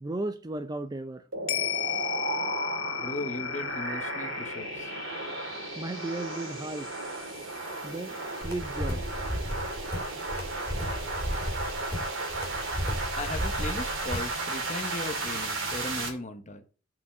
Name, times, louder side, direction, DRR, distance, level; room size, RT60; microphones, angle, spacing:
voice 1, 0.0-1.2 5.8-6.9 7.8-9.0, right 2 dB, 20° right, 0.4 m, -35 dB
sound 1, 1.3-16.1, right 2 dB, 65° right, 2.3 m, -34 dB
sound 2, 1.5-10.0 10.4-10.5, left 12 dB, 75° left, 0.5 m, -37 dB
voice 2, 3.0-4.9 13.2-16.7, left 2 dB, 35° left, 1.0 m, -37 dB
sound 3, 8.4-14.3, equal, 10° left, 2.5 m, -34 dB
5.6 x 5.4 x 6.4 m
head